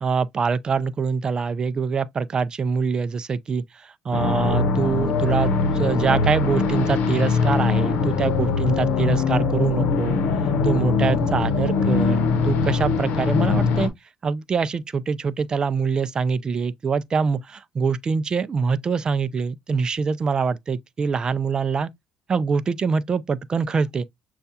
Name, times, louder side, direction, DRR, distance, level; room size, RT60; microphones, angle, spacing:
voice 1, 0.0-10.2 10.6-13.9 14.2-21.9 22.3-24.0, right 5 dB, 30° right, 0.4 m, -24 dB
sound 1, 4.1-13.9, left 5 dB, 75° left, 0.8 m, -22 dB
6.6 x 2.3 x 2.7 m
cardioid pair, 110°, 3 cm